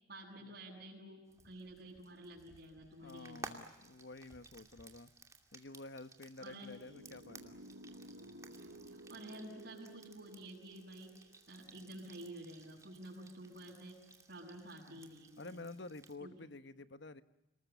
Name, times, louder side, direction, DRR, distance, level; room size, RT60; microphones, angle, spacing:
voice 1, 0.1-3.4 6.4-6.8 8.5-15.6 16.2-16.3, right 1 dB, 55° right, -7 dB, 7.3 m, -51 dB
Frying (food), 1.3-16.2, right 3 dB, 15° right, 2.5 m, -57 dB
voice 2, 3.0-5.1 5.5-7.6 14.9-15.0 15.4-17.2, left 2 dB, 65° left, 12 dB, 1.2 m, -50 dB
sound 1, 6.7-11.8, right 1 dB, 90° right, 1.6 m, -55 dB
29.5 x 20.0 x 9.3 m, 1.0 s
head